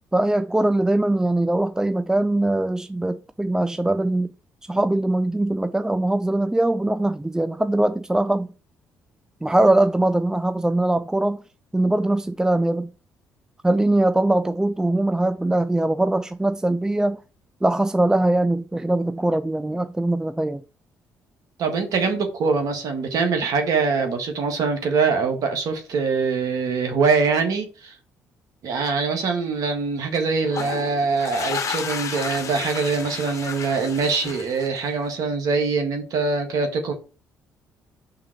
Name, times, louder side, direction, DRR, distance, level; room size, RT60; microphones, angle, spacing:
voice 1, 0.1-4.3 4.7-8.5 9.4-11.4 11.7-12.9 13.6-17.2 17.6-20.6, right 1 dB, 10° right, 0.4 m, -21 dB
voice 2, 21.6-27.9 28.6-36.9, right 4 dB, 70° right, 1.5 m, -23 dB
sound 1, 30.5-35.0, left 6 dB, 50° left, 1.3 m, -32 dB
5.7 x 3.7 x 5.8 m
supercardioid pair, 60°, 7 cm